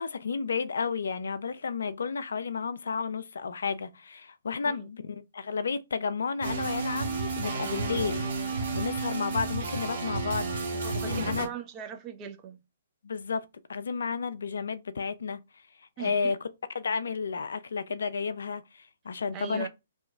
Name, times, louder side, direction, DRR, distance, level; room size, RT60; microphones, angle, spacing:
voice 1, 0.0-8.3 8.7-11.5 13.0-13.4 13.7-15.4 16.0-16.4 16.7-19.7, left 5 dB, 70° left, 0.3 m, -32 dB
sound 1, 6.4-11.5, right 4 dB, 60° right, 1.0 m, -32 dB
voice 2, 10.8-12.6 16.0-16.3 19.3-19.7, right 8 dB, 25° right, 0.5 m, -39 dB
2.8 x 2.2 x 3.3 m
figure-of-eight pair, 125°, 0 cm